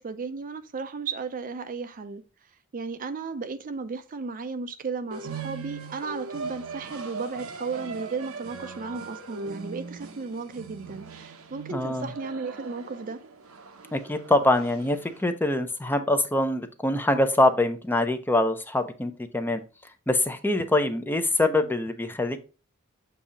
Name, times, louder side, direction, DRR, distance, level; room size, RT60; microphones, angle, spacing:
voice 1, 0.0-2.2 2.7-13.2, right 4 dB, 40° right, 0.5 m, -35 dB
sound 1, 5.1-15.3, right 5 dB, 85° right, 0.7 m, -40 dB
voice 2, 11.7-12.1 13.9-19.6 20.1-22.4, left 1 dB, 10° left, 0.5 m, -24 dB
7.1 x 2.7 x 4.9 m
head